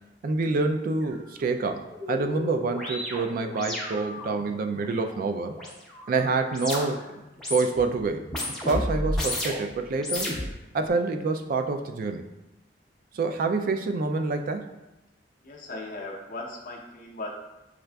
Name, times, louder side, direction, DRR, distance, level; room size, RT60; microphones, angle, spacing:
voice 1, 0.2-5.6 6.1-7.1 7.5-8.2 8.7-10.3 10.7-12.3 13.1-14.8, right 3 dB, 50° right, 6 dB, 0.3 m, -27 dB
sound 1, 1.0-1.1 1.5-7.1 7.3-7.9 8.2-9.7 10.0-10.9, left 1 dB, 5° left, 0.8 m, -34 dB
voice 2, 15.4-17.3, left 2 dB, 50° left, -1 dB, 0.5 m, -38 dB
6.2 x 2.4 x 2.2 m, 1.0 s
head